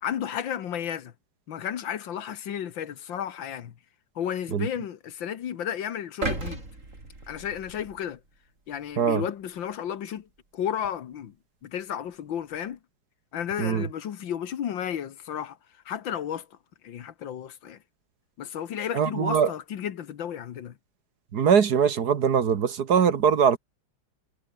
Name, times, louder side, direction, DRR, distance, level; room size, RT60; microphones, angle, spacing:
voice 1, 0.0-1.1 1.5-3.7 4.2-6.6 7.3-8.2 8.7-11.3 11.6-12.8 13.3-15.6 15.9-16.5 16.8-17.8 18.4-20.8, left 9 dB, 75° left, 2.0 m, -33 dB
sound 1, 6.2-8.4 8.9-9.0, right 2 dB, 40° right, 5.5 m, -35 dB
voice 2, 18.9-19.5 21.3-23.6, right 7 dB, 55° right, 1.8 m, -22 dB
omnidirectional pair, 2.1 m